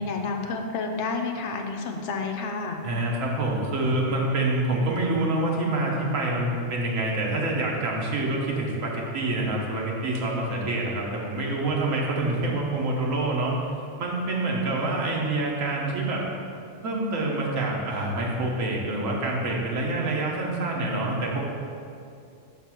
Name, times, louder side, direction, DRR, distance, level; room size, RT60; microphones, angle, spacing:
voice 1, 0.0-2.8, left 4 dB, 70° left, 3 dB, 0.9 m, -30 dB
voice 2, 2.8-13.5 14.0-16.2 16.8-21.4, right 2 dB, 85° right, -2 dB, 1.4 m, -26 dB
5.7 x 3.9 x 5.8 m, 2.5 s
omnidirectional pair, 1.3 m